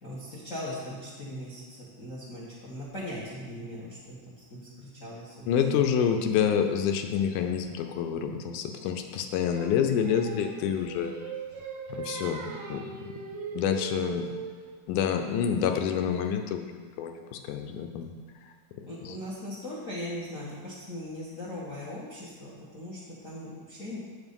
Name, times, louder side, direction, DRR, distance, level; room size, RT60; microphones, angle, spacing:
voice 1, 0.0-5.7 18.8-24.0, left 1 dB, 50° left, -7 dB, 0.9 m, -39 dB
voice 2, 5.5-11.1 12.0-12.5 12.7-12.8 13.5-14.3 14.9-18.1, left 8 dB, 85° left, 5 dB, 2.2 m, -27 dB
Singing, 9.5-14.8, right 6 dB, 75° right, 1.3 m, -39 dB
8.2 x 5.2 x 5.3 m, 1.5 s
omnidirectional pair, 3.6 m